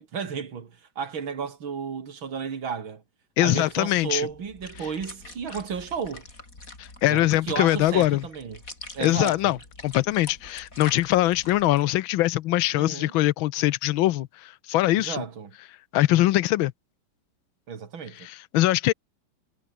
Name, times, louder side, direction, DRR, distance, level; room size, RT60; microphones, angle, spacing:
voice 1, 0.0-3.0 3.4-6.2 7.1-8.6 8.9-9.5 12.8-13.1 14.9-15.5 17.7-18.2, right 6 dB, 90° right, 3.2 m, -33 dB
voice 2, 3.4-4.3 6.8-8.2 9.0-9.6 9.8-15.2 15.9-16.7 18.2-18.9, left 15 dB, 90° left, 1.5 m, -22 dB
sound 1, 3.6-11.8, left 2 dB, 45° left, 5.9 m, -45 dB
omnidirectional pair, 2.1 m